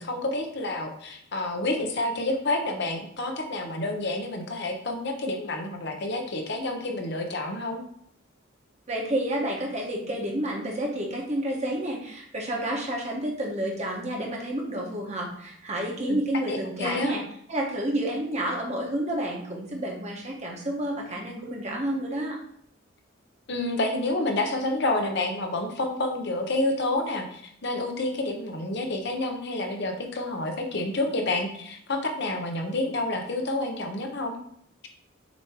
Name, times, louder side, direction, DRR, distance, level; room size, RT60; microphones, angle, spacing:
voice 1, 0.0-7.8 16.0-16.2 16.5-17.2 23.5-34.4, left 2 dB, 60° left, 3 dB, 0.9 m, -29 dB
voice 2, 8.9-17.2 17.5-22.4, right 1 dB, 35° right, -1 dB, 1.4 m, -30 dB
6.9 x 3.1 x 4.6 m, 0.67 s
head